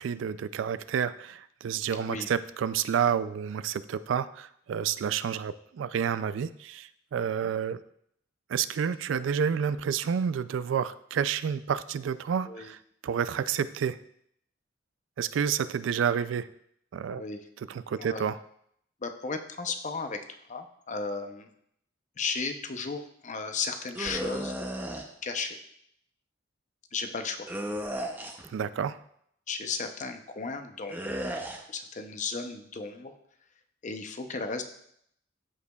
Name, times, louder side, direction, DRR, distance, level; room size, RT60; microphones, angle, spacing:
voice 1, 0.0-7.8 8.5-14.0 15.2-16.5 16.9-17.2 17.6-18.4 28.5-29.0, right 7 dB, 70° right, 15 dB, 0.3 m, -29 dB
voice 2, 17.1-17.4 18.0-18.3 19.0-20.2 20.5-21.5 22.2-24.6 25.2-25.6 26.9-27.5 29.5-31.0 31.7-33.1 33.8-34.6, left 4 dB, 40° left, 7 dB, 0.6 m, -35 dB
sound 1, 23.9-25.0 27.5-28.5 30.9-31.6, right 1 dB, 10° right, 0.6 m, -34 dB
13.0 x 5.0 x 2.3 m, 0.70 s
head